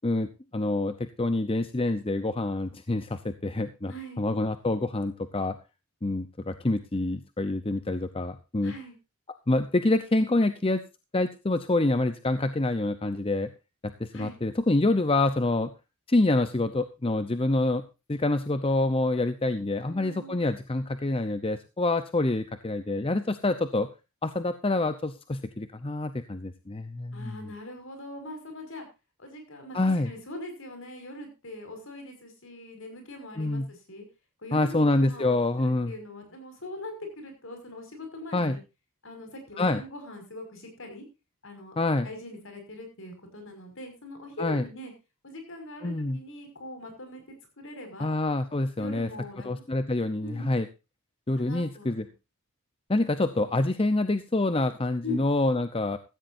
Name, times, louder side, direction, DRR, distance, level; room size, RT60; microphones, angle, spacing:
voice 1, 0.0-5.6 6.0-8.7 9.5-10.8 11.1-13.5 14.0-15.7 16.1-17.8 18.1-23.9 24.2-27.4 29.7-30.1 33.4-33.7 34.5-35.9 38.3-38.6 39.6-39.8 41.8-42.1 44.4-44.7 45.8-46.2 48.0-49.1 49.4-50.7 51.3-52.0 52.9-56.0, left 2 dB, 25° left, 11 dB, 0.7 m, -26 dB
voice 2, 3.9-4.3 8.6-9.0 14.1-14.4 19.7-20.4 27.1-28.9 29.2-34.1 34.4-38.6 39.0-41.0 41.4-41.8 42.0-44.9 45.2-47.2 47.6-48.1 48.8-49.5 50.2-50.6 51.4-52.1 55.0-55.2, left 1 dB, 60° left, 5 dB, 5.7 m, -42 dB
16.0 x 14.5 x 2.6 m, 0.28 s
head